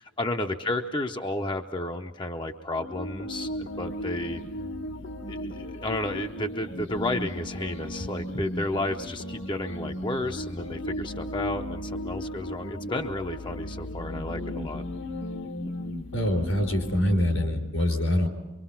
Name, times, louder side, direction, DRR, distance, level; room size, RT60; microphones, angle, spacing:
voice 1, 0.0-4.4 5.3-14.8, left 2 dB, 25° left, 5 dB, 0.7 m, -32 dB
sound 1, 2.8-17.5, left 1 dB, 60° left, 1.4 m, -35 dB
voice 2, 16.1-18.3, left 1 dB, 80° left, 5 dB, 4.6 m, -24 dB
24.5 x 24.5 x 5.8 m, 1.2 s
head